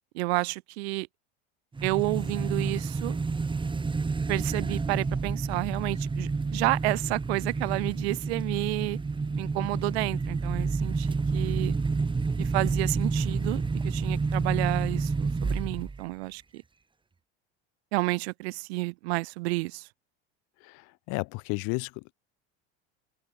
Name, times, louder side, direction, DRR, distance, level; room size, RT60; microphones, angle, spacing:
voice 1, 0.1-1.1 1.8-3.2 4.3-9.0 9.3-11.7 12.4-16.6 17.9-19.9, right 24 dB, 80° right, 2.5 m, -30 dB
sound 1, 1.8-16.0, right 4 dB, 15° right, 2.2 m, -29 dB
voice 2, 20.6-22.1, left 30 dB, 65° left, 1.5 m, -33 dB
supercardioid pair, 110°, 32 cm